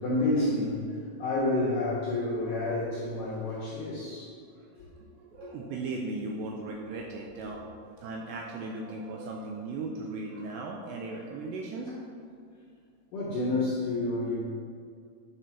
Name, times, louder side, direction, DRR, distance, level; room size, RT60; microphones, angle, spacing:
voice 1, 0.0-4.4 4.7-4.9 5.4-5.5 13.1-14.4, left 2 dB, 75° left, -7 dB, 2.0 m, -29 dB
voice 2, 5.0-11.9, right 3 dB, 80° right, 0 dB, 2.6 m, -37 dB
10.0 x 5.0 x 5.8 m, 2.2 s
omnidirectional pair, 5.7 m